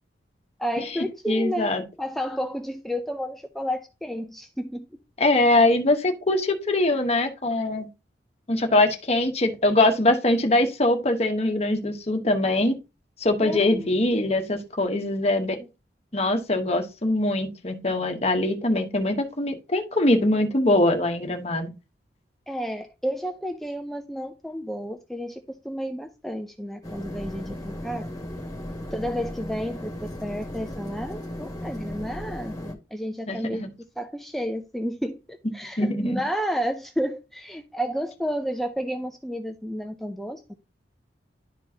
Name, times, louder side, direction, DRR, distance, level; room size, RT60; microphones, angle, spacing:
voice 1, 0.6-1.7 2.0-4.9 13.4-14.0 15.6-15.7 22.5-28.1 28.9-33.6 34.0-40.5, equal, ahead, 0.5 m, -31 dB
voice 2, 1.3-1.8 5.2-7.9 8.5-12.8 13.2-15.6 16.1-21.7 33.3-33.7 35.8-36.2, left 2 dB, 35° left, 1.1 m, -22 dB
sound 1, 26.8-32.7, left 1 dB, 20° left, 1.8 m, -36 dB
11.5 x 4.5 x 2.8 m
head